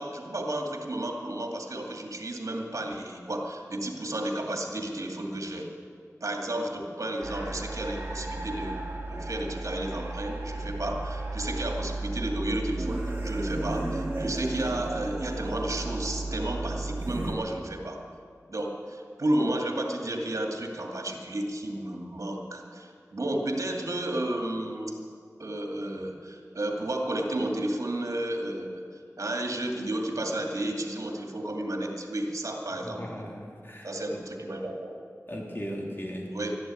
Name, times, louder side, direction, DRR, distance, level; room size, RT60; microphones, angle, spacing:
voice 1, 0.0-5.7 6.2-18.0 18.5-25.0 25.4-28.8 29.2-33.3 33.8-34.9 36.3-36.6, right 1 dB, 65° right, 1 dB, 2.4 m, -32 dB
sound 1, 7.2-17.3, right 2 dB, 35° right, 3.4 m, -34 dB
voice 2, 32.8-34.2 35.3-36.4, equal, 35° left, -1 dB, 3.4 m, -38 dB
13.0 x 11.5 x 9.8 m, 2.3 s
wide cardioid pair, 55°, 6 cm